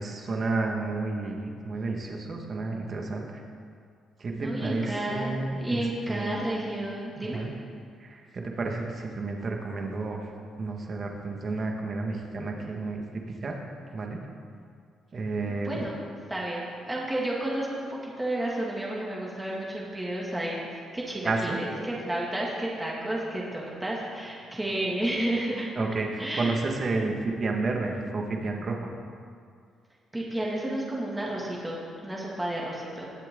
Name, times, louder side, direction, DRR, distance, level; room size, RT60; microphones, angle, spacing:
voice 1, 0.0-3.4 4.2-6.4 7.2-7.5 8.0-10.3 10.6-13.6 13.9-14.2 15.1-15.8 21.2-21.6 25.8-28.9, right 3 dB, 45° right, 1 dB, 1.8 m, -31 dB
voice 2, 4.3-5.3 5.6-7.4 15.4-25.7 26.2-26.6 30.1-33.1, right 1 dB, 10° right, -4 dB, 2.4 m, -31 dB
20.0 x 7.6 x 3.9 m, 2.2 s
cardioid pair, 90°, 0 cm